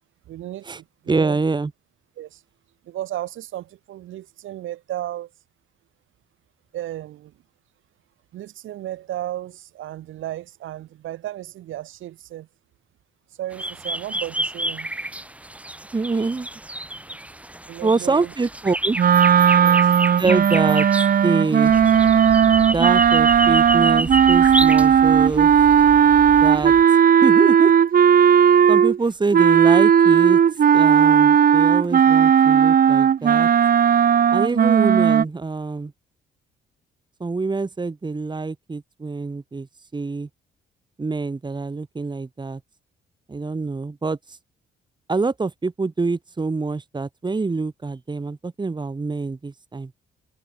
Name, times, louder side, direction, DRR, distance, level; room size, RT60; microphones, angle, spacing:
voice 1, 0.3-1.4 2.2-2.4 2.8-5.3 6.7-7.3 8.3-12.5 13.4-14.9 17.7-18.3 19.5-19.9, right 13 dB, 80° right, 4.6 m, -34 dB
voice 2, 1.1-1.7 15.9-16.5 17.8-19.0 20.2-20.9 21.2-21.7 22.7-25.5 26.4-27.7 28.7-30.4 30.7-33.5 34.3-35.9 37.2-39.7 39.9-40.3 41.0-42.6 43.3-44.2 45.1-49.9, right 3 dB, 20° right, 2.1 m, -25 dB
sound 1, 13.5-26.8, right 1 dB, 5° right, 1.2 m, -30 dB
sound 2, 19.0-29.0 29.3-35.2, right 8 dB, 45° right, 1.1 m, -15 dB
cardioid pair, 90°, 20 cm